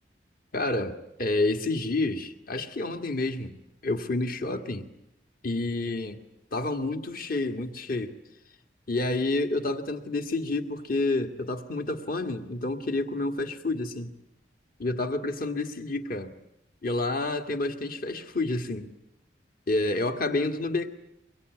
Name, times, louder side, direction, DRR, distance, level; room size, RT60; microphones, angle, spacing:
voice 1, 0.5-3.6 3.8-4.9 5.4-6.2 6.5-8.1 8.9-14.1 14.8-16.3 16.8-18.9 19.7-20.9, left 2 dB, 55° left, 6 dB, 1.9 m, -29 dB
24.0 x 23.5 x 9.5 m, 0.81 s
head